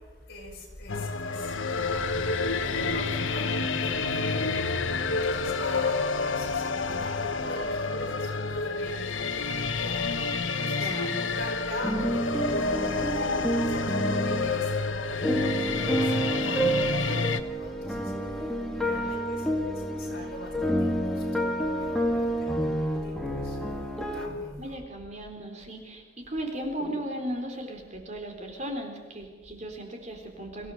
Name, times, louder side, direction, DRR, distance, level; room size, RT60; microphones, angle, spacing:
voice 1, 0.0-24.8, left 1 dB, 55° left, -1 dB, 7.2 m, -41 dB
sound 1, 0.9-17.4, left 4 dB, 85° left, 1.3 m, -29 dB
voice 2, 10.8-11.3 24.6-30.7, right 1 dB, 35° right, 3 dB, 4.0 m, -36 dB
sound 2, 11.8-14.5 15.2-24.3, right 1 dB, ahead, 2.5 m, -29 dB
24.5 x 17.0 x 7.9 m, 1.4 s
head